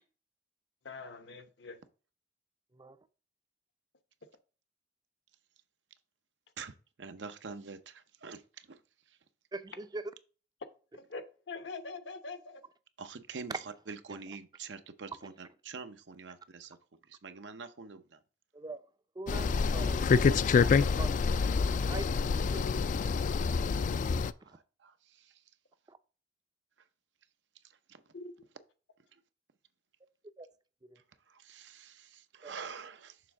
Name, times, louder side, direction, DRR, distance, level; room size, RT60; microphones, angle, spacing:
voice 1, 0.8-1.8 4.2-4.3 10.9-12.6 22.5-22.7 28.1-28.3, left 3 dB, 70° left, 0.9 m, -44 dB
voice 2, 7.0-8.8 13.0-16.8 17.1-18.2 24.4-25.4 27.9-28.0 29.1-29.2 31.3-33.2, right 5 dB, 85° right, 0.7 m, -46 dB
voice 3, 9.5-10.0 18.5-18.8 19.2-21.4 21.9-22.0 22.4-22.6 25.9-26.0 30.4-30.5 32.4-32.5, right 2 dB, 25° right, 0.5 m, -43 dB
sound 1, 19.3-24.3, left 5 dB, 45° left, 0.3 m, -27 dB
6.8 x 3.5 x 6.1 m
head